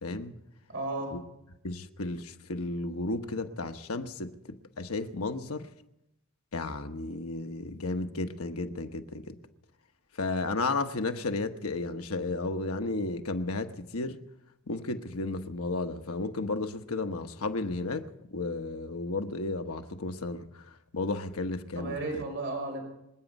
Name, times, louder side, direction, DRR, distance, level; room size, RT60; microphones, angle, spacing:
voice 1, 0.0-0.3 1.6-4.3 4.8-5.7 6.5-9.4 10.2-14.2 14.7-20.5 20.9-22.2, left 2 dB, 80° left, 1.1 m, -33 dB
voice 2, 0.7-1.2 21.7-22.8, right 2 dB, 55° right, 5.2 m, -34 dB
26.5 x 9.1 x 5.4 m
head